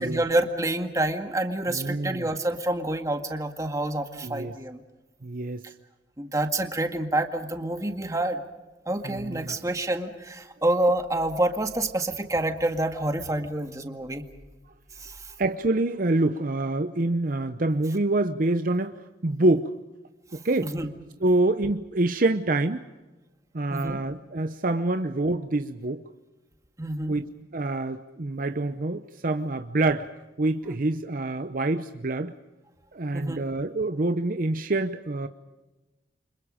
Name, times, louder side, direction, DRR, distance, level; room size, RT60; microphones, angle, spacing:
voice 1, 0.0-4.8 5.6-5.7 6.2-8.4 8.9-14.2 15.0-15.3 20.6-20.9 23.7-24.0 26.8-27.1 33.1-33.4, right 1 dB, 20° right, 5 dB, 1.9 m, -28 dB
voice 2, 1.7-2.3 4.2-4.6 5.2-5.6 9.0-9.6 15.4-19.0 19.2-19.7 20.3-20.7 21.2-22.8 23.5-26.0 27.1-27.3 27.5-30.1 30.4-32.3 32.9-35.3, right 2 dB, 50° right, 9 dB, 0.8 m, -26 dB
29.5 x 26.0 x 5.1 m, 1.1 s
head